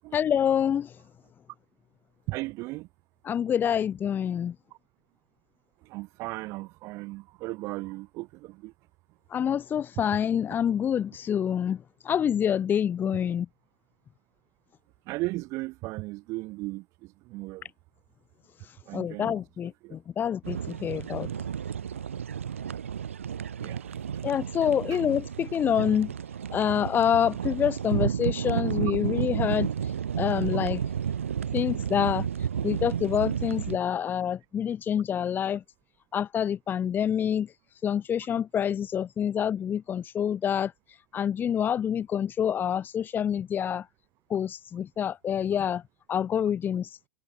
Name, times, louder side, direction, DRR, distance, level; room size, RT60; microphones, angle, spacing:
voice 1, 0.1-0.9 3.2-4.5 9.3-13.5 18.9-21.3 24.2-26.1 26.5-29.7 30.2-30.8 31.5-32.3 32.6-35.6 36.1-37.5 37.8-40.7 41.1-43.8 44.3-45.8 46.1-47.0, left 9 dB, 30° left, 5.0 m, -27 dB
voice 2, 2.3-2.9 5.9-8.7 15.1-17.6 18.9-19.4 19.8-20.0 23.6-23.9 24.9-25.0, right 21 dB, 50° right, 6.0 m, -36 dB
sound 1, 20.4-33.8, right 8 dB, 85° right, 5.6 m, -31 dB
hypercardioid pair, 105°, 7 cm